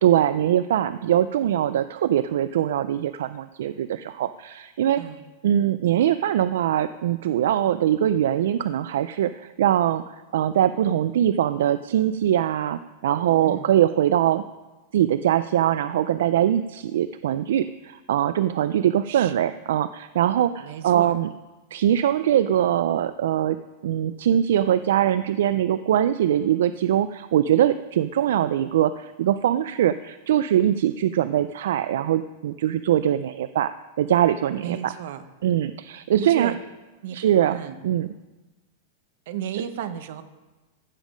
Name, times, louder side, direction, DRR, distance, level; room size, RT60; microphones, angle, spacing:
voice 1, 0.0-5.0 5.4-14.4 14.9-21.3 21.7-23.6 23.8-34.9 35.4-36.5 37.1-37.6 37.8-38.1 39.5-39.6, right 11 dB, 75° right, 13 dB, 0.3 m, -22 dB
voice 2, 5.0-5.3 13.4-13.7 19.1-19.4 20.6-21.2 34.6-35.2 36.2-36.6 37.0-37.2 37.5-37.8 39.3-40.2, right 10 dB, 60° right, 12 dB, 0.9 m, -33 dB
15.0 x 7.3 x 5.1 m, 1.2 s
supercardioid pair, 170°, 0 cm